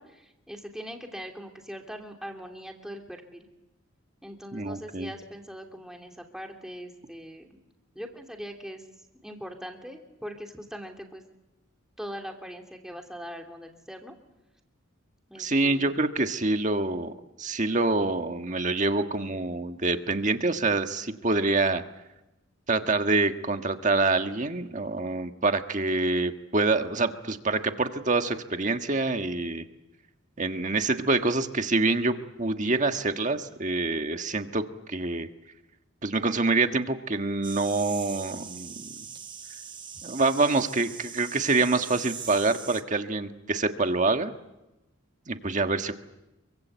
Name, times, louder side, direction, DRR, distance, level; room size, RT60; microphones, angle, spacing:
voice 1, 0.0-3.5 4.2-7.6 7.9-8.8 9.2-11.2 12.0-14.1 15.3-16.0, equal, 5° right, 2 dB, 2.9 m, -41 dB
voice 2, 4.5-5.1 15.4-17.1 17.4-21.8 22.7-29.6 30.4-34.6 34.9-35.3 36.0-39.0 40.0-44.3 45.3-45.9, right 3 dB, 35° right, 7 dB, 1.5 m, -26 dB
sound 1, 37.4-42.8, right 6 dB, 20° right, 1.2 m, -41 dB
27.5 x 24.0 x 8.2 m, 0.97 s
head